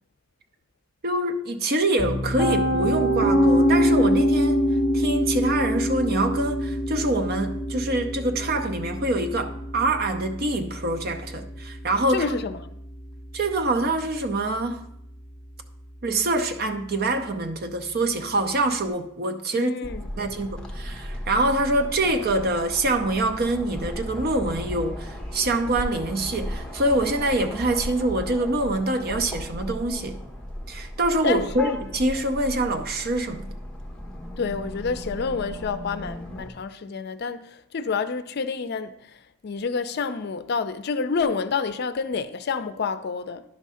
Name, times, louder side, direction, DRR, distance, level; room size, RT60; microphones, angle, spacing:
voice 1, 1.0-4.6 4.9-12.4 13.3-14.9 16.0-19.7 20.2-30.2 30.7-33.5, right 2 dB, 50° right, 0.7 m, -25 dB
Piano, 2.0-13.9, equal, 15° right, 2.3 m, -25 dB
voice 2, 12.1-12.7 19.5-20.1 31.2-31.7 34.4-43.4, left 5 dB, 55° left, 0.5 m, -29 dB
sound 1, 19.8-36.5, left 1 dB, 5° left, 1.0 m, -36 dB
10.5 x 3.6 x 5.6 m
head